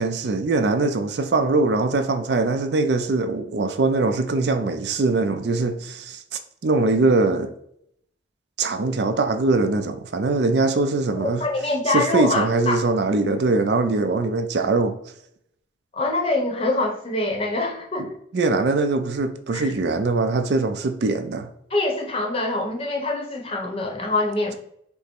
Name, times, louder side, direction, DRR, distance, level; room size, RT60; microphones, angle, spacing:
voice 1, 0.0-7.5 8.6-11.5 11.9-15.0 18.3-21.5, right 3 dB, 60° right, 0.4 m, -22 dB
voice 2, 11.1-12.8 15.9-18.1 19.5-19.7 21.7-24.5, left 2 dB, 30° left, 0.8 m, -25 dB
5.3 x 2.0 x 4.4 m
head